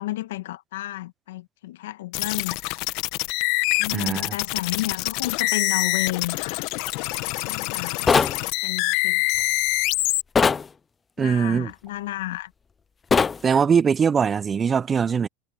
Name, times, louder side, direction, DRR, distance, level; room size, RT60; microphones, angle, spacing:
voice 1, 0.0-2.6 3.8-6.6 7.4-8.2 8.6-9.2 11.2-12.5, left 17 dB, 75° left, 1.7 m, -32 dB
sound 1, 2.1-10.2, left 23 dB, 60° left, 1.7 m, -25 dB
voice 2, 3.9-4.3 11.2-11.7 13.4-15.3, right 6 dB, 25° right, 0.7 m, -21 dB
sound 2, 8.1-8.4 10.4-10.6 13.1-13.4, left 5 dB, 20° left, 0.5 m, -19 dB
hypercardioid pair, 100°, 0 cm